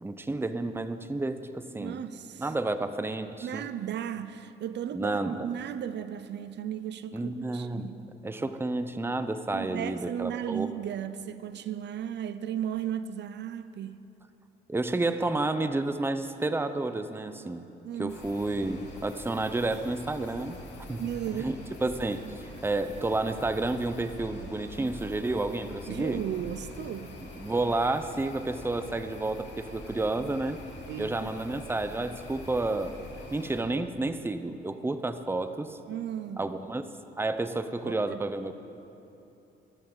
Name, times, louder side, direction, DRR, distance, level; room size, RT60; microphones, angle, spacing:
voice 1, 0.0-2.0 2.4-3.7 4.9-5.5 7.1-7.9 8.2-10.7 14.7-17.6 18.0-20.6 20.9-21.0 21.3-26.2 27.4-30.6 31.0-33.0 33.3-35.8 36.4-36.8 37.2-38.5, right 2 dB, 10° right, 10 dB, 0.7 m, -30 dB
voice 2, 1.8-2.5 3.4-8.0 9.5-14.0 17.8-18.2 21.0-21.5 25.9-27.2 30.9-31.4 35.9-36.5 37.8-38.2, right 10 dB, 60° right, 13 dB, 0.5 m, -35 dB
sound 1, 18.1-33.6, left 2 dB, 60° left, 3.0 m, -45 dB
20.5 x 12.5 x 4.0 m, 2.9 s
cardioid pair, 90°, 20 cm